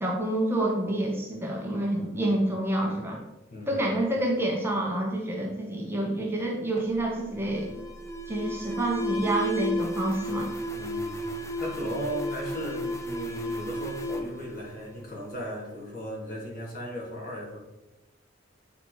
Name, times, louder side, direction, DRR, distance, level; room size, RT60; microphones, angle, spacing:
voice 1, 0.0-3.2 3.7-7.7 8.3-10.5, right 1 dB, 15° right, -1 dB, 1.2 m, -28 dB
voice 2, 2.0-2.4 3.5-3.9 10.7-17.6, equal, 50° left, -2 dB, 2.1 m, -37 dB
Alarm, 6.8-15.4, equal, 15° left, 0.7 m, -33 dB
9.0 x 4.2 x 4.7 m, 0.98 s
head